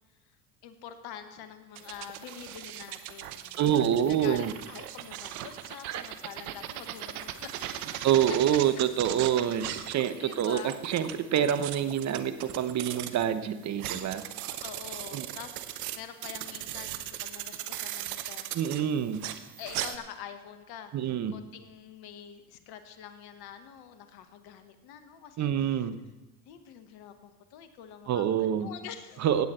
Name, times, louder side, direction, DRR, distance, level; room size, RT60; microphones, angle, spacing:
voice 1, 0.6-7.8 9.2-10.7 14.6-18.8 19.6-25.7 26.5-29.3, left 9 dB, 55° left, 9 dB, 1.3 m, -46 dB
sound 1, 1.8-13.3 13.7-20.0, right 12 dB, 70° right, 1.0 m, -39 dB
voice 2, 3.6-4.5 5.9-6.0 8.0-14.2 15.1-15.3 18.5-19.2 20.9-21.3 25.4-26.0 28.1-28.7 29.2-29.5, right 9 dB, 35° right, 11 dB, 1.0 m, -27 dB
16.5 x 8.6 x 4.3 m, 1.1 s
hypercardioid pair, 75°, 45 cm